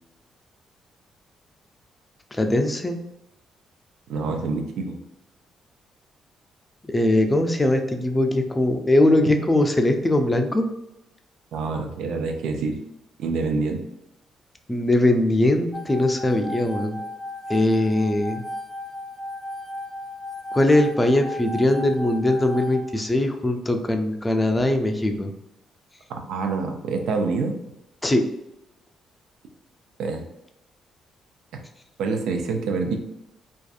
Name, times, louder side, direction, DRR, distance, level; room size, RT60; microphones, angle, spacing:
voice 1, 2.3-3.0 6.8-10.7 14.7-17.0 17.5-18.4 20.5-25.3 28.0-28.2, left 1 dB, 20° left, 5 dB, 0.4 m, -21 dB
voice 2, 4.1-5.0 9.2-9.3 11.5-12.8 13.2-13.8 26.1-27.5 30.0-30.2 32.0-33.0, right 4 dB, 80° right, 4 dB, 0.4 m, -26 dB
sound 1, 15.7-22.8, left 1 dB, 15° right, 0.7 m, -35 dB
2.6 x 2.3 x 2.4 m, 0.86 s
supercardioid pair, 65°, 0 cm